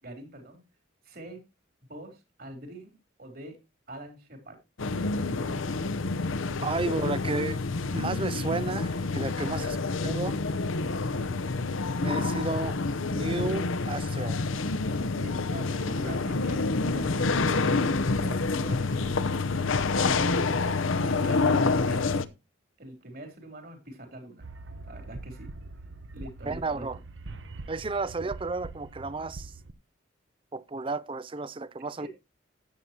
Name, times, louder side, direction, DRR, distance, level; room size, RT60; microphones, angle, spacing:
voice 1, 0.0-0.6 1.0-1.4 1.9-2.9 3.2-3.6 3.9-4.6 6.5-7.1 9.5-9.7 10.3-10.4 11.2-11.4 12.0-12.3 15.2-20.6 21.0-22.2 22.8-24.5 24.8-25.5 26.1-26.9 32.0-32.1, right 1 dB, 45° right, 3.7 m, -44 dB
sound 1, 4.8-22.2, left 3 dB, 80° left, 0.8 m, -28 dB
voice 2, 6.6-7.6 7.9-9.8 10.0-10.4 12.0-12.8 13.1-14.4 26.5-27.0 27.7-29.5 30.5-32.1, right 3 dB, 25° right, 0.5 m, -32 dB
sound 2, 24.4-29.7, right 2 dB, 65° right, 0.9 m, -43 dB
13.5 x 9.2 x 2.9 m
head